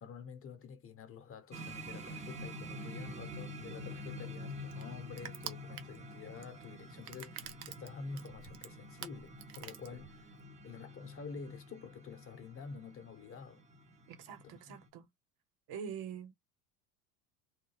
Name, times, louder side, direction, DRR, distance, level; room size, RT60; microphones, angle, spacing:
voice 1, 0.0-10.2 10.6-13.6 14.7-14.8, left 5 dB, 30° left, 1.0 m, -48 dB
sound 1, 1.5-14.9, equal, 15° right, 0.8 m, -48 dB
Crushing, 3.6-10.5, right 10 dB, 85° right, 0.7 m, -49 dB
voice 2, 14.1-15.1 15.7-16.3, right 7 dB, 55° right, 1.2 m, -44 dB
3.2 x 2.2 x 3.2 m
hypercardioid pair, 90°, 43 cm